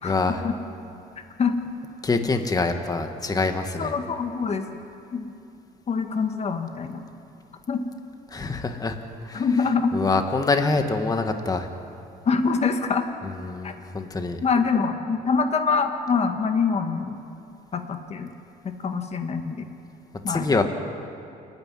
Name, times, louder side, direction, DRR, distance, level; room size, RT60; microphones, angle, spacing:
voice 1, 0.0-0.4 2.0-3.9 8.3-9.0 9.2-9.5 9.9-11.7 13.2-14.4 20.3-20.6, left 3 dB, 20° left, 6 dB, 1.6 m, -25 dB
voice 2, 3.8-4.7 5.1-5.3 5.9-7.0 7.7-7.8 9.3-10.0 12.3-13.1 13.6-13.7 14.4-17.2 17.7-18.3 18.6-19.7 20.2-20.6, left 5 dB, 40° left, 6 dB, 1.9 m, -25 dB
29.0 x 9.9 x 9.7 m, 2.7 s
cardioid pair, 110°, 17 cm